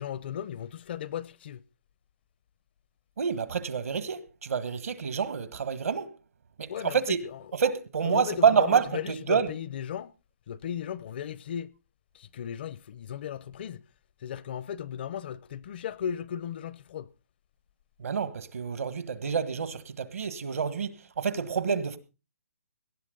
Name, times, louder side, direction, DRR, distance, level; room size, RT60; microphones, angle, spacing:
voice 1, 0.0-1.6 6.7-7.0 7.3-7.4 8.0-10.1 10.5-11.7 12.1-13.8 14.2-17.1, left 9 dB, 40° left, 0.6 m, -36 dB
voice 2, 3.2-6.1 6.6-7.2 7.5-9.5 18.0-22.0, right 6 dB, 70° right, 1.6 m, -28 dB
18.5 x 12.0 x 3.9 m
hypercardioid pair, 155°, 8 cm